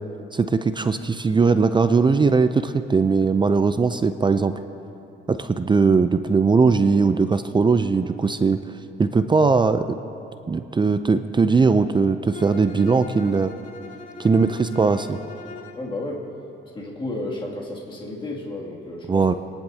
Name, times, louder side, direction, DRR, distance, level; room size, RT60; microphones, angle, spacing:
voice 1, 0.3-4.5 5.3-8.6 9.0-10.0 10.5-13.5 14.2-15.2 19.1-19.3, right 4 dB, 25° right, 10 dB, 0.5 m, -19 dB
Bowed string instrument, 12.3-15.9, left 5 dB, 45° left, 2.4 m, -41 dB
voice 2, 15.7-16.3 16.7-19.4, left 2 dB, 25° left, -4 dB, 2.5 m, -32 dB
29.5 x 10.5 x 2.8 m, 2.9 s
cardioid pair, 90°, 20 cm